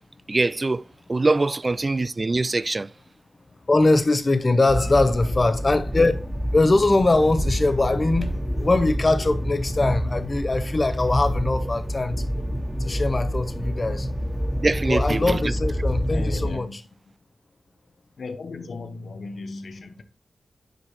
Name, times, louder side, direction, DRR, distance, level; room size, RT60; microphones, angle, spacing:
voice 1, 0.3-0.8 1.1-2.9 14.6-15.4, right 3 dB, 35° right, 0.3 m, -23 dB
voice 2, 3.7-6.1 6.5-8.3 8.6-12.4 12.8-14.1 14.9-16.8, left 2 dB, 35° left, 0.9 m, -22 dB
sound 1, 4.7-16.5, equal, 5° right, 1.5 m, -27 dB
voice 3, 4.8-5.8 13.8-14.0 16.0-16.8 18.2-20.0, left 3 dB, 75° left, 0.8 m, -36 dB
9.2 x 4.7 x 3.1 m
cardioid pair, 70°, 0 cm